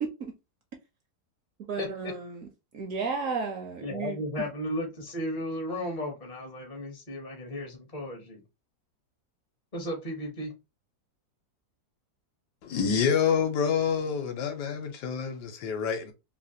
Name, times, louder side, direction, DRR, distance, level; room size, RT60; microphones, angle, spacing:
voice 1, 0.0-0.3 1.7-2.4 2.7-4.2, right 4 dB, 70° right, 0.8 m, -33 dB
voice 2, 1.8-2.1 3.8-8.4 9.7-10.5, left 1 dB, 40° left, 0.5 m, -35 dB
voice 3, 12.6-16.1, left 7 dB, 75° left, 1.2 m, -27 dB
3.2 x 2.4 x 2.6 m
omnidirectional pair, 1.8 m